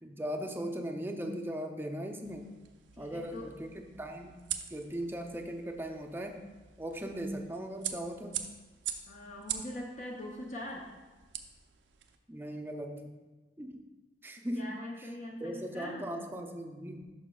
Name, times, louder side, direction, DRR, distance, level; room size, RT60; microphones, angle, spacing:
voice 1, 0.0-2.5 3.0-3.7 4.0-4.4 4.7-6.4 6.8-8.4 12.3-13.2 13.6-13.8 14.2-14.7 15.0-15.1 15.4-17.1, equal, 10° right, 4 dB, 0.5 m, -38 dB
sound 1, 2.2-12.2, right 10 dB, 85° right, 0.5 m, -44 dB
voice 2, 2.9-3.5 9.1-10.9 14.4-16.1, left 1 dB, 45° left, -1 dB, 0.6 m, -42 dB
11.0 x 5.6 x 2.3 m, 1.2 s
head